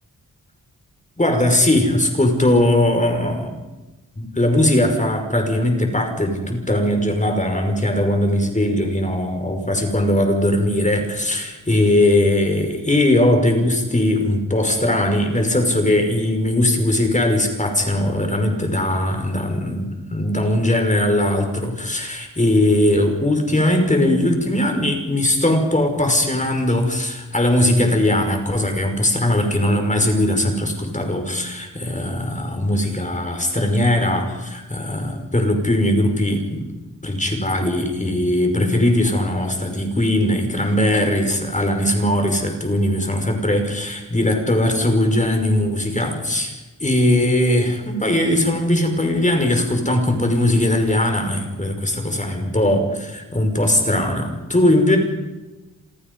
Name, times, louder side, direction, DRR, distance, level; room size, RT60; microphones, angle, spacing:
voice 1, 1.2-3.6 4.2-36.8 37.0-46.6 46.8-55.0, left 1 dB, 20° left, 4 dB, 5.6 m, -19 dB
28.0 x 27.0 x 5.5 m, 1.1 s
cardioid pair, 75°, 35 cm